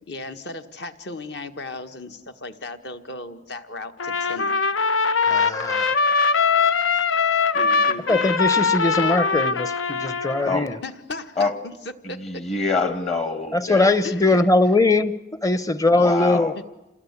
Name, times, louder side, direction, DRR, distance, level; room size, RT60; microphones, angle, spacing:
voice 1, 0.1-4.5 7.5-8.1 10.8-11.8 12.1-12.4 14.0-14.5 16.0-16.1, left 2 dB, 55° left, 1.6 m, -36 dB
Trumpet, 4.0-10.6, left 5 dB, 85° left, 1.0 m, -21 dB
voice 2, 5.3-5.9 8.1-10.8 13.5-16.5, left 2 dB, 15° left, 0.8 m, -21 dB
voice 3, 12.0-13.9 14.3-14.4 16.0-16.5, left 3 dB, 35° left, 1.4 m, -25 dB
28.0 x 20.0 x 8.4 m
head